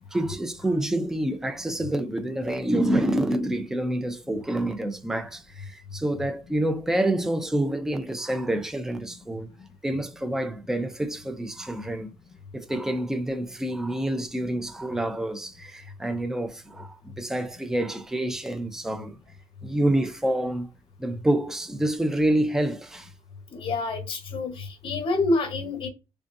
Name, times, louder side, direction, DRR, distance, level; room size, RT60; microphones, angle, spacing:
voice 1, 0.1-9.5 9.8-12.1 12.5-19.2 19.6-20.7 21.0-23.1, right 1 dB, 5° right, 0.4 m, -27 dB
voice 2, 23.5-25.9, left 2 dB, 50° left, 1.0 m, -27 dB
3.9 x 3.4 x 2.6 m
cardioid pair, 155°, 11 cm